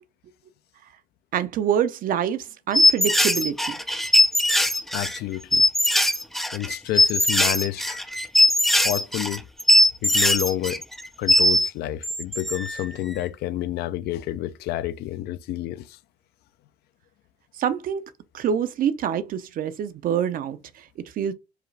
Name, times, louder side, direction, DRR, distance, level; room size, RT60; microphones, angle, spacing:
voice 1, 1.3-3.8 17.5-21.3, right 8 dB, 55° right, 0.5 m, -26 dB
sound 1, 2.7-11.7 12.0-12.9, left 1 dB, ahead, 0.4 m, -20 dB
voice 2, 4.9-5.6 6.5-8.0 8.8-9.4 10.0-10.8 11.2-16.0, left 14 dB, 70° left, 0.4 m, -29 dB
4.7 x 2.4 x 3.2 m
cardioid pair, 110°, 17 cm